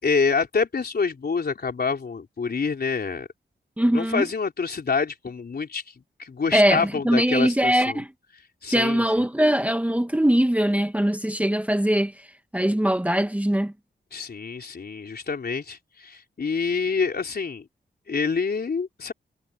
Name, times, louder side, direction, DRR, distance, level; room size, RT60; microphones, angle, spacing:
voice 1, 0.0-3.3 3.8-8.0 8.6-9.0 14.1-17.7 18.1-19.1, left 5 dB, 55° left, 4.0 m, -27 dB
voice 2, 3.8-4.2 6.5-8.1 8.7-12.1 12.5-13.7, equal, 5° right, 1.5 m, -21 dB
wide cardioid pair, 85°, 19 cm